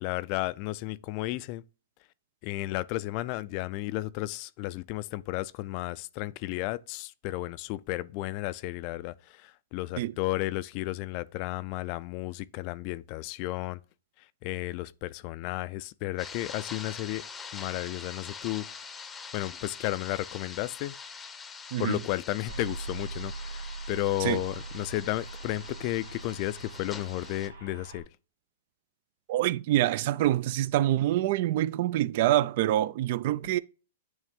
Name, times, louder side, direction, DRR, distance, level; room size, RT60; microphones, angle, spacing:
voice 1, 0.0-1.6 2.4-13.8 14.4-17.2 17.5-18.7 19.3-20.9 21.8-28.0, left 17 dB, 45° left, 0.3 m, -33 dB
sound 1, 16.2-27.5, left 5 dB, 15° left, 0.6 m, -44 dB
voice 2, 21.7-22.0 24.2-24.4 29.3-33.6, right 14 dB, 55° right, 0.3 m, -26 dB
sound 2, 22.5-28.0, right 3 dB, 90° right, 1.7 m, -41 dB
9.2 x 3.2 x 3.6 m
hypercardioid pair, 125°, 0 cm